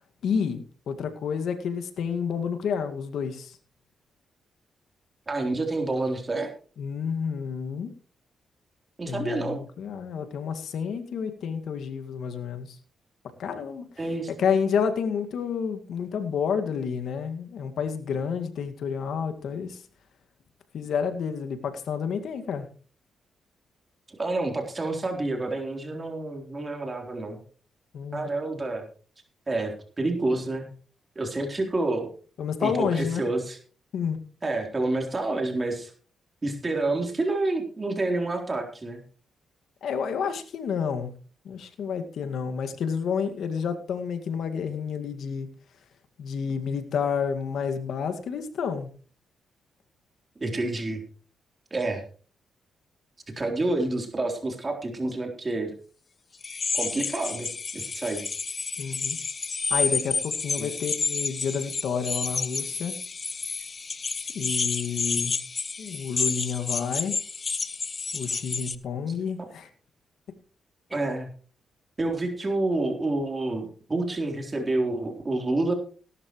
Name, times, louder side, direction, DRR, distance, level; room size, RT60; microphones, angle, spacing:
voice 1, 0.2-3.6 6.8-7.9 9.1-12.8 13.4-13.9 14.3-19.8 20.7-22.7 27.9-28.3 32.4-33.2 33.9-34.3 39.8-41.1 41.4-45.5 46.2-48.9 58.8-59.2 59.7-63.0 64.3-65.4 65.8-67.2 68.1-69.7, left 6 dB, 75° left, 8 dB, 2.0 m, -30 dB
voice 2, 5.3-6.5 9.0-9.6 14.0-14.3 24.2-27.4 28.1-28.8 29.5-30.7 31.2-32.1 32.6-33.6 34.4-35.9 36.4-39.0 50.4-51.0 51.7-52.0 53.4-55.7 56.7-57.5 57.7-58.2 60.6-60.7 70.9-71.3 72.0-75.7, right 2 dB, 30° right, 2 dB, 3.8 m, -28 dB
sound 1, 56.4-68.7, left 4 dB, 40° left, 1.1 m, -30 dB
17.5 x 12.0 x 3.2 m, 0.40 s
cardioid pair, 70°, 0 cm